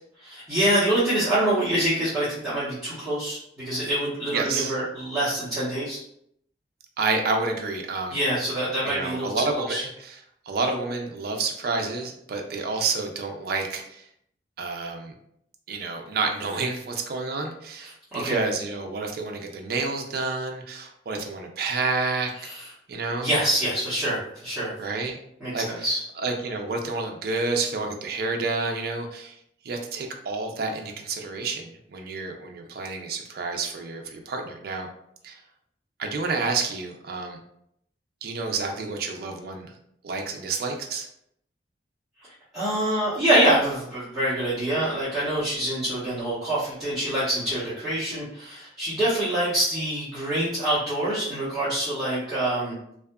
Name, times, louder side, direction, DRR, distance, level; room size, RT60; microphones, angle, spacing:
voice 1, 0.2-6.0 8.1-9.8 17.8-18.4 22.4-22.7 23.2-24.7 25.4-26.0 42.5-52.9, right 1 dB, 5° right, -16 dB, 1.0 m, -25 dB
voice 2, 4.3-4.7 7.0-8.2 8.9-10.2 10.5-14.0 14.6-15.1 15.7-22.3 22.9-23.3 24.8-25.2 25.5-25.9 26.2-29.3 29.6-34.9 35.2-35.4 36.0-37.4 38.2-39.7 40.0-41.1, right 3 dB, 55° right, 3 dB, 0.4 m, -29 dB
2.7 x 2.3 x 2.2 m, 0.73 s
head